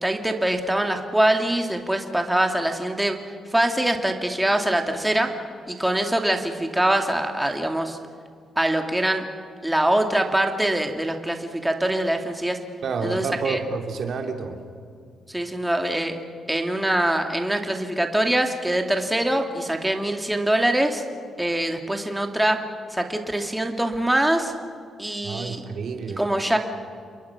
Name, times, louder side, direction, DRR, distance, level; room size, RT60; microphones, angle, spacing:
voice 1, 0.0-3.2 3.5-5.3 5.7-8.0 8.6-9.2 9.6-12.6 13.0-13.6 15.3-16.2 16.5-21.0 21.4-22.6 22.9-24.5 25.0-25.6 26.2-26.6, right 1 dB, 10° right, 4 dB, 2.3 m, -23 dB
voice 2, 12.8-14.5 25.2-26.2, right 4 dB, 65° right, 4 dB, 2.8 m, -29 dB
28.5 x 22.0 x 5.9 m, 2.2 s
cardioid pair, 85°, 0 cm